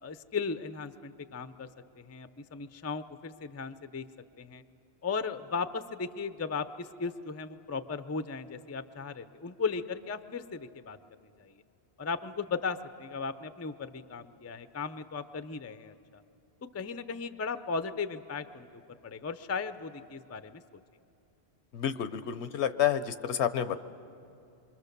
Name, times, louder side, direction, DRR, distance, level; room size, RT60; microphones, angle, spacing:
voice 1, 0.0-1.7 2.0-4.0 4.4-4.6 5.0-11.6 12.0-16.2 16.7-20.6, left 5 dB, 25° left, 12 dB, 0.3 m, -36 dB
voice 2, 21.7-23.8, left 9 dB, 80° left, 12 dB, 1.0 m, -29 dB
26.5 x 24.0 x 6.7 m, 2.7 s
omnidirectional pair, 1.1 m